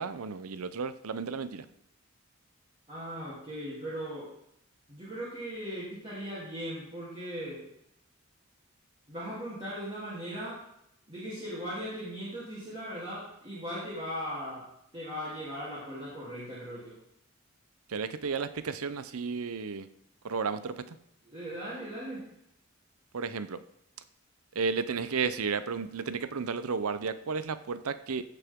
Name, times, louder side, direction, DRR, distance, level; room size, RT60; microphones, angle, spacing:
voice 1, 0.0-1.6 17.9-19.9 20.2-20.8 23.1-23.6 24.5-28.2, right 5 dB, 85° right, 13 dB, 0.6 m, -33 dB
voice 2, 2.9-4.3 4.9-7.6 9.1-10.6 11.1-14.7 14.9-16.9 21.2-22.2, equal, 25° right, -10 dB, 3.0 m, -38 dB
15.5 x 6.8 x 3.6 m, 0.77 s
head